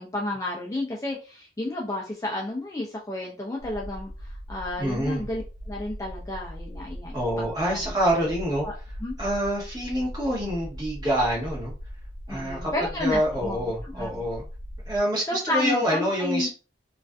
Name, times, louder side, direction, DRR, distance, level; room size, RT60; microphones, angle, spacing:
voice 1, 0.0-8.3 8.6-8.7 9.0-9.1 12.3-14.2 15.3-16.5, left 2 dB, 15° left, -2 dB, 0.3 m, -32 dB
sound 1, 3.6-15.0, equal, 85° right, 0.5 m, -39 dB
voice 2, 4.8-5.2 7.1-8.7 9.2-11.7 12.3-14.4 14.9-16.5, equal, 20° right, -4 dB, 1.1 m, -26 dB
2.4 x 2.4 x 2.2 m, 0.33 s
head